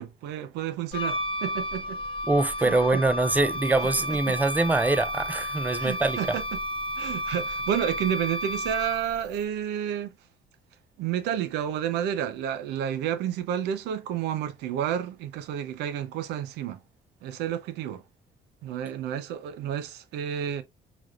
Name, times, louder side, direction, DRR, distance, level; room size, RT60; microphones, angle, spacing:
voice 1, 0.0-2.0 2.6-3.0 4.3-4.4 5.8-6.4 7.0-10.1 11.0-16.8 17.2-18.0 18.6-20.6, right 9 dB, 85° right, 0.7 m, -30 dB
Wind instrument woodwind instrument, 0.9-9.2, equal, 30° left, 0.7 m, -32 dB
voice 2, 2.3-6.2, right 2 dB, 10° right, 0.4 m, -24 dB
sound 1, 3.2-9.5, right 8 dB, 50° right, 1.5 m, -52 dB
4.9 x 3.1 x 2.4 m
cardioid pair, 110°, 17 cm